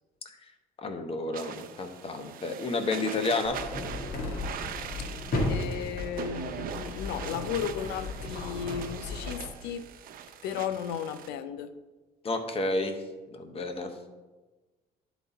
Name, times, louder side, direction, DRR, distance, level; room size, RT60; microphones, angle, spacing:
voice 1, 0.8-3.6 12.2-13.0 13.3-13.9, left 2 dB, 35° left, 6 dB, 1.0 m, -31 dB
sound 1, 1.3-11.3, right 9 dB, 60° right, 0.6 m, -42 dB
sound 2, 3.4-9.5, left 2 dB, 60° left, 1.8 m, -35 dB
voice 2, 5.5-9.9 10.4-11.7, left 8 dB, 90° left, 12 dB, 0.6 m, -35 dB
11.0 x 4.1 x 4.1 m, 1.2 s
cardioid pair, 110°, 17 cm